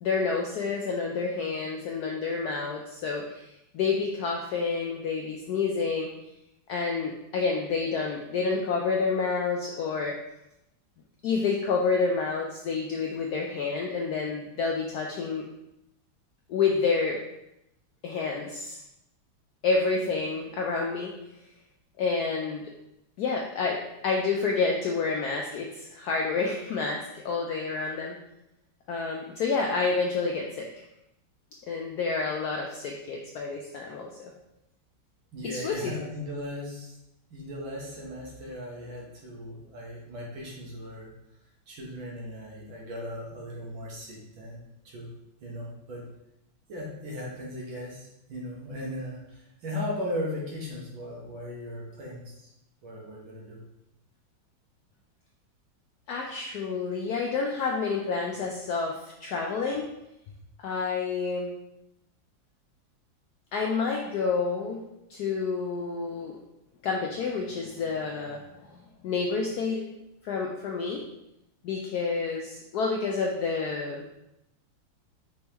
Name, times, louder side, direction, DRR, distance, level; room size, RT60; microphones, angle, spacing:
voice 1, 0.0-6.1 6.7-10.1 11.2-15.5 16.5-17.2 18.0-18.8 19.6-21.1 22.0-22.6 23.2-28.2 28.9-30.8 31.7-34.3 35.4-36.1 56.1-59.9 60.6-61.5 63.5-64.8 65.1-66.3 66.8-68.8 69.0-69.8 70.2-71.0 71.6-74.0, left 4 dB, 80° left, 0 dB, 0.8 m, -29 dB
voice 2, 35.3-37.0 37.3-41.1 41.7-45.1 45.4-46.0 46.7-52.5 52.8-53.6, left 1 dB, 75° right, -3 dB, 2.0 m, -37 dB
5.2 x 3.4 x 2.9 m, 0.85 s
omnidirectional pair, 2.2 m